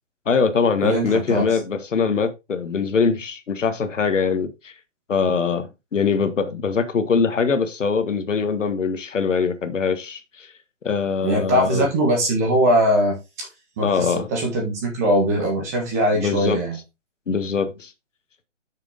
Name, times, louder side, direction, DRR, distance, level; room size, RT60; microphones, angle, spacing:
voice 1, 0.2-4.7 5.1-10.5 10.8-11.9 13.8-14.3 16.1-16.6 17.3-17.9, left 5 dB, 75° left, 1.6 m, -22 dB
voice 2, 0.8-1.5 11.2-13.2 13.8-16.8, equal, 15° right, 1.6 m, -21 dB
7.3 x 6.6 x 3.8 m
hypercardioid pair, 180°, 38 cm